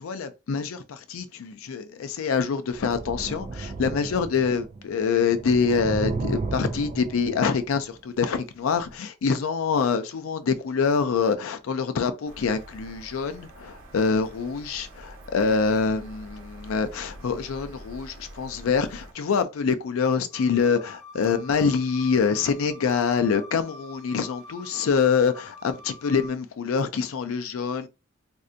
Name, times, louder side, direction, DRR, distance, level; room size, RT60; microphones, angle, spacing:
voice 1, 0.0-27.9, left 5 dB, 85° left, 0.4 m, -25 dB
sound 1, 2.7-4.9 5.1-7.9 8.8-8.9, right 3 dB, 35° right, 0.3 m, -34 dB
sound 2, 12.3-19.1, right 1 dB, 70° right, 1.0 m, -45 dB
sound 3, 20.3-26.3, left 2 dB, 10° left, 1.0 m, -46 dB
3.2 x 2.6 x 2.5 m
head